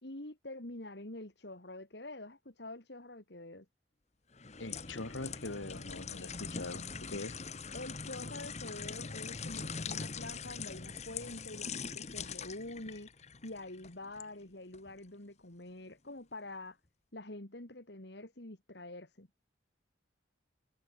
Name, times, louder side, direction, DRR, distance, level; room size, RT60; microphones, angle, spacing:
voice 1, 0.0-3.7 7.7-16.8 17.1-19.3, left 2 dB, 60° left, 2.6 m, -46 dB
sound 1, 4.3-14.3 14.7-14.9, left 5 dB, 35° left, 1.2 m, -42 dB
voice 2, 4.6-7.4, left 2 dB, 80° left, 1.9 m, -42 dB
head